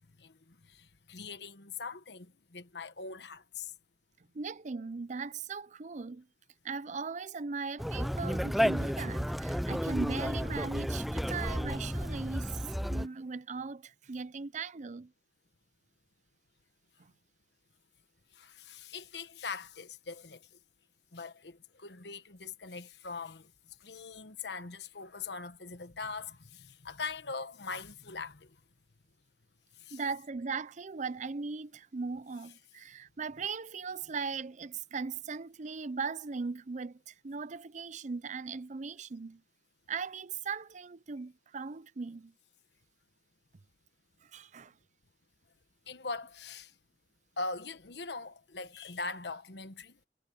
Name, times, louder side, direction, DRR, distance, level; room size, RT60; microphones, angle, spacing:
voice 1, 0.2-3.7 18.3-20.5 21.1-23.5 23.8-28.5 29.8-30.0 45.9-46.7 47.4-50.0, left 4 dB, 70° left, 1.3 m, -42 dB
voice 2, 4.3-6.3 6.6-15.1 17.0-17.1 29.9-39.4 39.9-42.3 44.2-44.7, right 4 dB, 45° right, 0.6 m, -39 dB
Conversation, 7.8-13.1, equal, ahead, 0.6 m, -32 dB
head